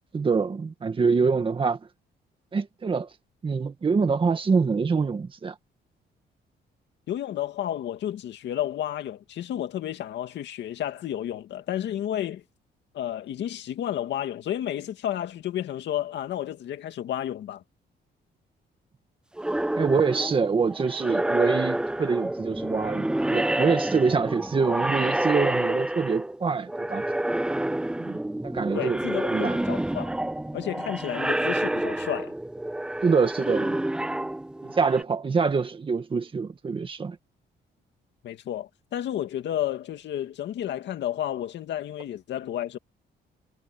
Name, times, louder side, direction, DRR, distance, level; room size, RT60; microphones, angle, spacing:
voice 1, 0.1-1.8 2.5-3.1 3.4-5.5 19.8-27.0 28.0-29.0 29.3-29.6 33.0-33.8 34.6-37.2, right 5 dB, 30° right, 1.9 m, -25 dB
voice 2, 7.1-12.4 12.9-17.6 28.7-30.1 30.5-32.3 38.2-42.8, left 11 dB, 75° left, 2.2 m, -31 dB
sound 1, 19.4-26.4 26.7-35.0, right 1 dB, 5° right, 0.4 m, -28 dB
cardioid pair, 150°, 18 cm